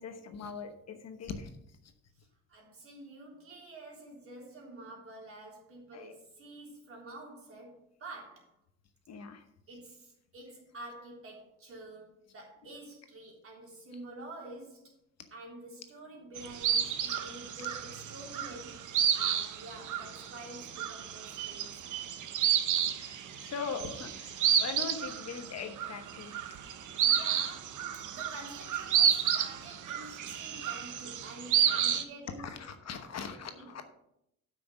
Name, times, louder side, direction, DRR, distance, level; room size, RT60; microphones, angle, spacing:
voice 1, 0.0-1.5 5.9-6.1 9.1-9.4 22.9-26.5 31.7-31.8 32.4-33.8, left 5 dB, 50° left, 7 dB, 1.1 m, -41 dB
voice 2, 2.5-8.5 9.7-14.9 15.3-22.6 26.9-32.5 33.2-33.7, right 2 dB, 40° right, -1 dB, 3.5 m, -48 dB
sound 1, 16.4-32.0, right 9 dB, 65° right, 1.1 m, -31 dB
8.5 x 6.0 x 5.9 m, 0.79 s
cardioid pair, 120°, 34 cm